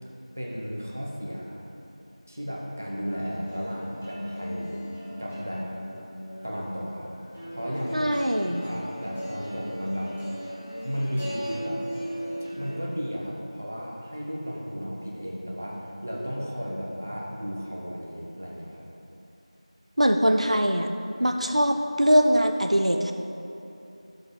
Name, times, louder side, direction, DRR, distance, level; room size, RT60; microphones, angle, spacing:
voice 1, 0.4-1.7 2.3-4.8 5.2-5.7 6.4-7.2 7.5-8.1 8.5-10.1 10.8-11.8 12.6-18.8, equal, 20° right, -3 dB, 1.0 m, -34 dB
sound 1, 3.1-12.8, equal, 15° left, 1.9 m, -37 dB
voice 2, 7.9-8.7 20.0-20.9 21.2-23.1, equal, 70° right, 5 dB, 0.8 m, -22 dB
13.0 x 12.5 x 3.9 m, 2.8 s
figure-of-eight pair, 180°, 4 cm